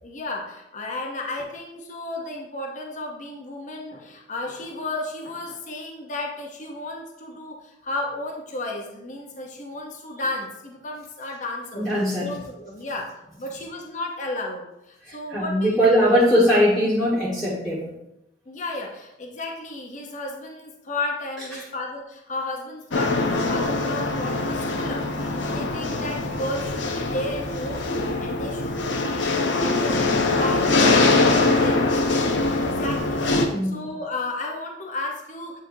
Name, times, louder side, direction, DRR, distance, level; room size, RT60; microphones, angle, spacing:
voice 1, 0.0-11.9 12.2-13.1 13.4-16.0 18.5-27.9 28.2-29.1 29.6-32.3 32.6-35.6, left 2 dB, 45° left, 1 dB, 0.8 m, -33 dB
voice 2, 11.7-12.3 15.1-17.9 33.5-33.9, equal, ahead, -10 dB, 1.7 m, -20 dB
sound 1, 22.9-33.5, left 2 dB, 90° left, 0.8 m, -23 dB
8.8 x 4.4 x 2.7 m, 0.86 s
head